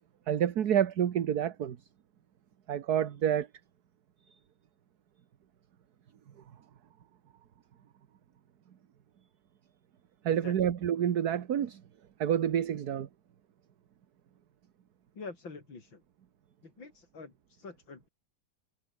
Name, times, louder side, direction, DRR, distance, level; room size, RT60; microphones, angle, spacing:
voice 1, 0.3-1.8 2.7-3.5 10.2-11.8 12.2-13.1, right 9 dB, 60° right, 1.6 m, -28 dB
voice 2, 15.1-16.0 16.6-18.1, left 4 dB, 85° left, 4.7 m, -46 dB
omnidirectional pair, 2.0 m